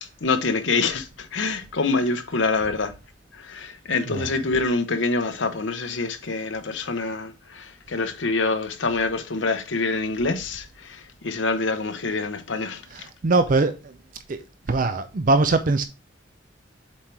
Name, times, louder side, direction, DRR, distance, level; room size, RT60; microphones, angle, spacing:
voice 1, 0.2-2.9 3.3-13.1, left 3 dB, 80° left, 0.9 m, -26 dB
voice 2, 12.9-14.0 14.3-14.4 14.7-15.8, right 3 dB, 45° right, 0.5 m, -22 dB
7.3 x 4.5 x 3.3 m
head